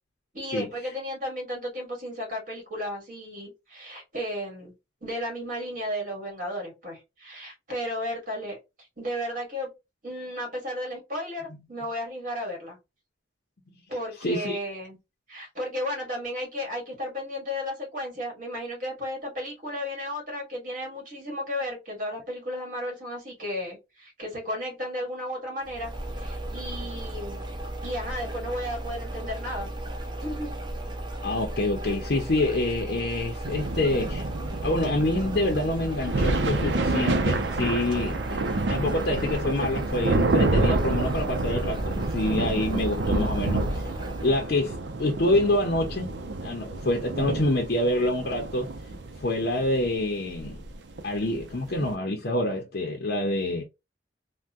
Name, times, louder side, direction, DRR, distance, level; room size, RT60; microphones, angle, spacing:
voice 1, 0.3-4.7 5.0-8.6 9.0-9.7 10.0-12.8 13.9-15.0 15.3-27.4 27.8-29.7 30.2-30.6, equal, 45° right, 1.8 m, -34 dB
voice 2, 14.2-14.6 31.2-34.2 34.5-38.4 38.7-43.6 44.2-44.7 45.0-46.1 46.4-48.7 49.2-50.6 51.0-53.6, left 1 dB, 60° left, 0.6 m, -26 dB
sound 1, 25.6-44.5, right 1 dB, 25° right, 0.6 m, -35 dB
sound 2, 33.4-51.9, right 2 dB, 80° right, 0.6 m, -29 dB
3.4 x 2.2 x 2.5 m
head